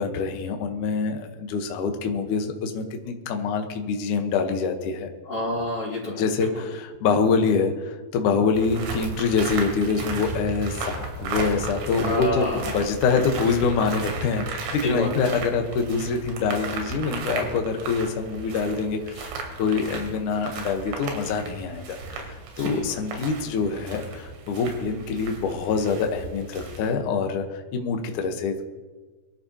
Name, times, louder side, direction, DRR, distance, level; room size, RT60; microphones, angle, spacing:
voice 1, 0.0-5.1 6.2-19.3 19.6-27.4 27.7-28.6, left 5 dB, 75° left, 4 dB, 1.8 m, -25 dB
voice 2, 5.2-6.6 12.0-12.9 13.1-13.2 14.8-15.2 22.6-22.9, left 1 dB, 35° left, -8 dB, 3.9 m, -28 dB
sound 1, 8.5-26.9, right 4 dB, 90° right, 4.5 m, -35 dB
24.0 x 13.5 x 2.9 m, 1.3 s
omnidirectional pair, 5.4 m